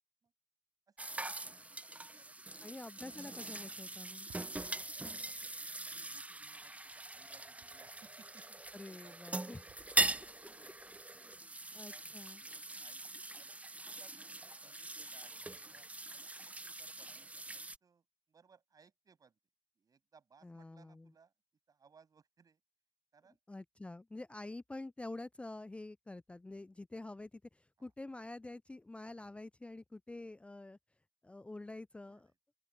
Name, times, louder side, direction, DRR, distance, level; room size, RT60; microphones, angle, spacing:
voice 1, 0.9-2.6 4.8-8.6 8.9-9.4 9.6-10.2 10.4-11.0 11.4-12.0 12.4-19.4 19.8-21.3 21.7-22.6 23.1-23.4 27.8-27.9 32.0-32.4, right 6 dB, 55° right, 7.3 m, -67 dB
sound 1, 1.0-17.8, right 2 dB, 20° right, 0.8 m, -42 dB
voice 2, 2.6-4.3 8.7-9.6 11.7-12.4 20.4-21.1 23.5-27.3 27.8-30.8 31.2-32.3, left 2 dB, 15° left, 0.3 m, -47 dB
sound 2, 4.3-5.3 7.6-8.2 9.7-11.0, right 9 dB, 70° right, 5.9 m, -65 dB
open air
hypercardioid pair, 40°, 8 cm